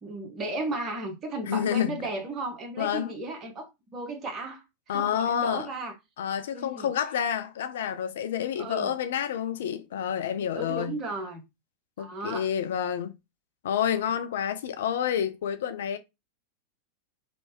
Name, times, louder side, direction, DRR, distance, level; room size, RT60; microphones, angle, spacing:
voice 1, 0.0-4.6 4.9-5.9 6.5-6.9 8.6-8.9 10.5-11.4 12.0-12.5, right 2 dB, 25° right, 1.1 m, -35 dB
voice 2, 1.5-2.0 2.8-3.1 4.9-5.7 6.2-11.0 12.0-13.1 13.6-16.0, left 9 dB, 60° left, 0.4 m, -29 dB
3.2 x 2.7 x 3.0 m
figure-of-eight pair, 90°, 0 cm